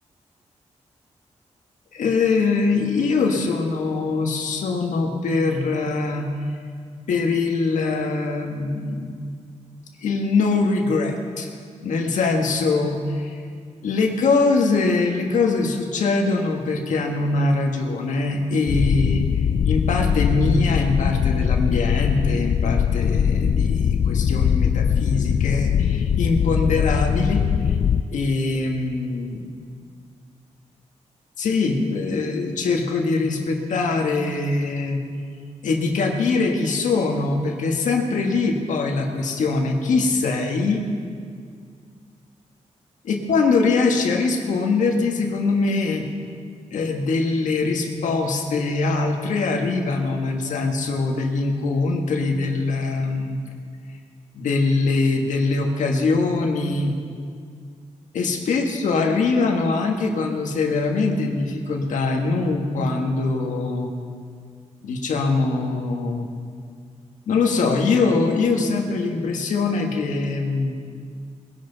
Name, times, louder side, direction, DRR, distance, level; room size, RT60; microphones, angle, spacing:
voice 1, 1.9-6.3 7.1-9.1 10.0-11.5 11.8-13.4 13.8-27.8 28.1-29.5 31.4-35.0 35.6-40.8 43.0-46.0 46.7-53.4 54.3-56.9 58.1-63.9 64.8-66.3 67.3-70.7, left 3 dB, 90° left, 2 dB, 1.6 m, -22 dB
sound 1, 18.7-28.0, left 8 dB, 60° left, 0.4 m, -21 dB
20.5 x 11.0 x 4.1 m, 2.1 s
cardioid pair, 70°, 13 cm